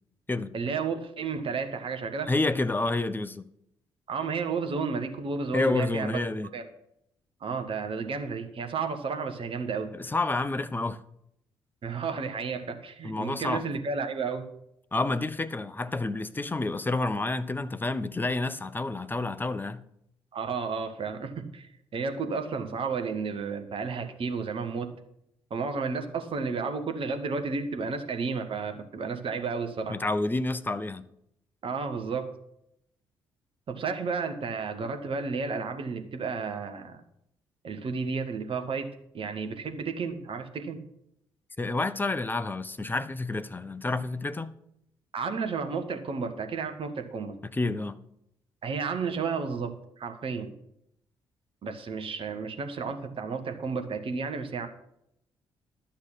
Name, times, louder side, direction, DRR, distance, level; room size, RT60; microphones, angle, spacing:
voice 1, 0.5-2.3 4.1-6.2 6.5-6.6 7.4-9.9 11.8-14.4 20.3-24.9 25.5-30.0 31.6-32.3 33.7-37.0 37.6-40.8 45.1-47.4 48.6-50.5 51.6-54.7, right 5 dB, 45° right, 1.4 m, -32 dB
voice 2, 2.3-3.5 5.5-6.5 9.9-11.0 13.0-13.6 14.9-19.8 29.9-31.0 41.6-44.5 47.5-47.9, left 2 dB, 15° left, 0.7 m, -29 dB
11.5 x 6.4 x 5.8 m
figure-of-eight pair, 40°, 13 cm